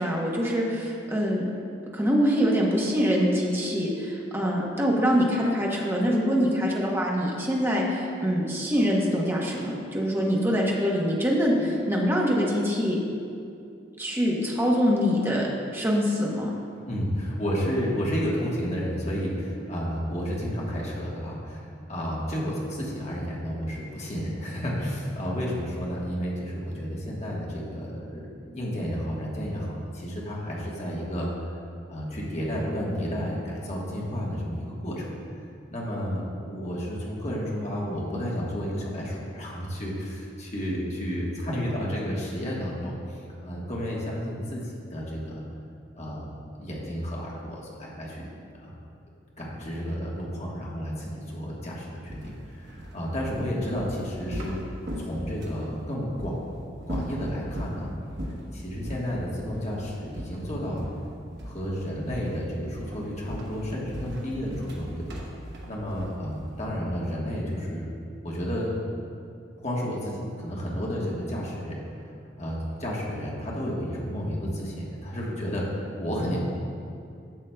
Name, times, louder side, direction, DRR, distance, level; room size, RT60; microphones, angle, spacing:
voice 1, 0.0-1.5 1.9-13.0 14.0-16.5, equal, 15° right, -3 dB, 1.0 m, -24 dB
voice 2, 16.8-31.3 31.9-35.1 35.7-45.4 45.9-46.3 46.6-48.3 48.6-48.8 49.4-54.6 55.0-56.4 56.9-57.9 58.5-60.8 61.4-65.1 65.7-68.0 68.2-68.8 69.6-71.7 72.4-76.4, equal, 40° left, -4 dB, 1.3 m, -31 dB
sound 1, 52.1-55.7 56.2-56.4 56.8-57.8 58.2-58.5 58.8-59.1 59.5-59.7 60.1-61.1 61.4-61.7 62.1-62.4 62.7-66.7, equal, 65° right, 1.1 m, -38 dB
10.5 x 7.0 x 2.3 m, 2.4 s
head